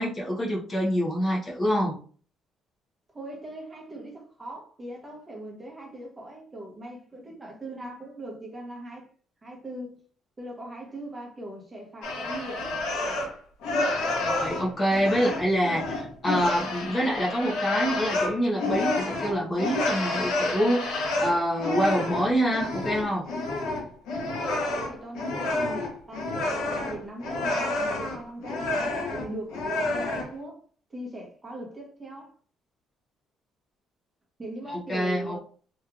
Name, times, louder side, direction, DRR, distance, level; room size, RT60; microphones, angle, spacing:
voice 1, 0.0-2.0 14.2-23.3 34.7-35.4, equal, 25° left, 0.9 m, -26 dB
voice 2, 3.1-9.1 9.4-10.0 10.4-12.8 24.5-29.6 29.9-30.6 30.9-32.3 34.4-35.4, right 1 dB, 20° right, 1.0 m, -40 dB
sound 1, 12.0-13.3 13.6-30.3, left 2 dB, 85° left, 1.0 m, -29 dB
3.1 x 3.0 x 2.4 m
cardioid pair, 130°, 0 cm